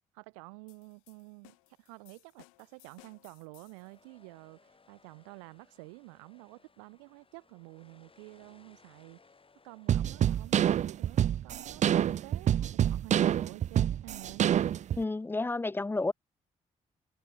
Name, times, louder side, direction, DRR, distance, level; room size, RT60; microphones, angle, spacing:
voice 1, 0.1-9.3 9.6-14.4, right 31 dB, 80° right, 4.2 m, -50 dB
sound 1, 0.7-4.0, left 31 dB, 80° left, 2.4 m, -61 dB
sound 2, 3.4-15.3, left 4 dB, 30° left, 4.5 m, -66 dB
sound 3, 9.9-15.0, right 10 dB, 45° right, 0.4 m, -27 dB
voice 2, 15.0-16.1, left 3 dB, 10° left, 0.4 m, -31 dB
hypercardioid pair, 45°, 17 cm